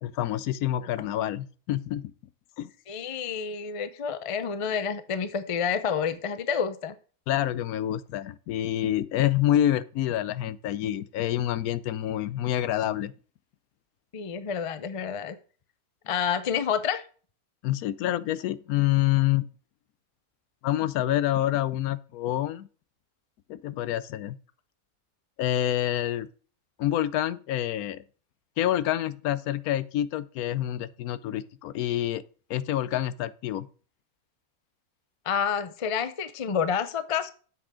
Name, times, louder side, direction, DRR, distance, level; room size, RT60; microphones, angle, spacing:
voice 1, 0.0-2.1 2.6-2.7 7.3-13.1 17.6-19.4 20.6-22.7 23.5-24.4 25.4-26.3 26.8-28.0 28.6-32.2 32.5-33.7, left 13 dB, 80° left, 1.0 m, -27 dB
voice 2, 2.9-6.9 14.1-15.4 16.1-17.0 35.3-37.3, left 7 dB, 40° left, 0.4 m, -29 dB
7.7 x 6.1 x 4.9 m
omnidirectional pair, 1.6 m